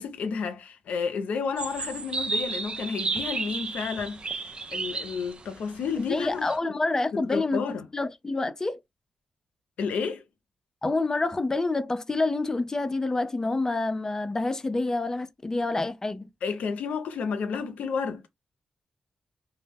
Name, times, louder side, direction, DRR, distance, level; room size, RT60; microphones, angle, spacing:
voice 1, 0.0-6.5 7.1-7.9 9.8-10.2 16.4-18.2, left 5 dB, 85° left, 0.5 m, -31 dB
sound 1, 1.6-6.6, right 3 dB, 45° right, 0.4 m, -33 dB
voice 2, 6.0-7.6 7.9-8.8 10.8-16.3, left 2 dB, 25° left, 0.4 m, -27 dB
2.1 x 2.1 x 3.3 m
cardioid pair, 70°, 2 cm